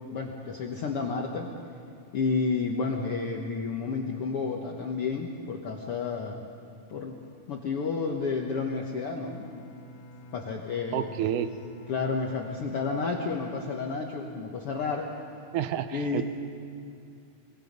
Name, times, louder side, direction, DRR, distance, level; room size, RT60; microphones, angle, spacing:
voice 1, 0.1-1.5 2.1-6.5 6.9-7.2 7.5-9.6 10.3-11.1 11.9-15.1 15.9-16.2, left 4 dB, 55° left, 1 dB, 1.8 m, -31 dB
Bowed string instrument, 8.8-14.9, equal, 35° left, 1.0 m, -48 dB
voice 2, 10.9-11.6 15.5-16.2, right 10 dB, 90° right, 10 dB, 2.3 m, -29 dB
24.5 x 22.5 x 5.4 m, 2.5 s
omnidirectional pair, 3.6 m